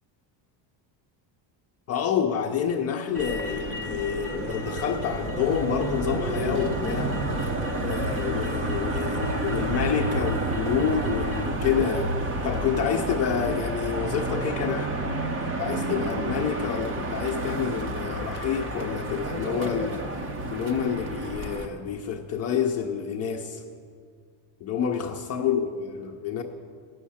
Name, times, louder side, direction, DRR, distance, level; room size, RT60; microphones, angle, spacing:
voice 1, 1.9-7.2 7.8-14.9 15.6-20.1 20.5-23.6 24.6-26.4, left 7 dB, 35° left, 1 dB, 0.5 m, -28 dB
Motor vehicle (road), 3.1-21.6, right 2 dB, 25° right, 0.8 m, -30 dB
14.0 x 6.4 x 8.5 m, 2.1 s
cardioid pair, 170°, 46 cm